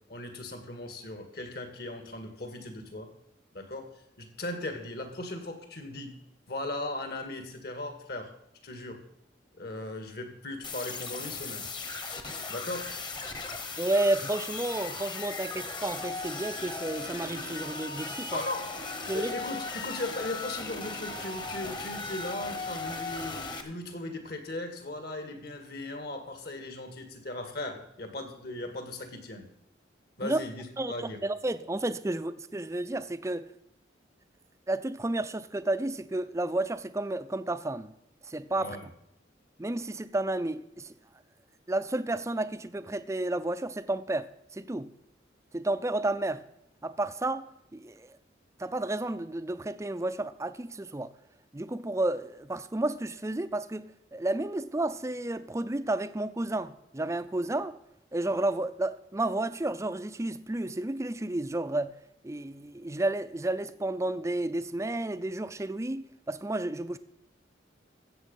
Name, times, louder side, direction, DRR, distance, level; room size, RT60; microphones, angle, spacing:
voice 1, 0.1-3.1 3.5-3.9 4.2-6.2 6.5-8.3 8.6-9.0 9.5-11.6 12.5-12.9 18.3-18.8 19.1-29.4 30.2-31.2 38.6-38.9, left 2 dB, 55° left, 1.9 m, -38 dB
sound 1, 10.6-23.6, left 3 dB, 25° left, 1.1 m, -37 dB
voice 2, 13.8-18.4 19.1-19.3 30.2-30.4 30.8-33.5 34.7-37.9 38.2-38.9 39.6-40.9 41.7-44.9 45.5-46.5 46.8-48.2 48.6-51.1 51.5-57.8 58.1-62.0 62.2-67.0, right 2 dB, 15° right, 0.5 m, -31 dB
14.0 x 8.0 x 5.5 m
head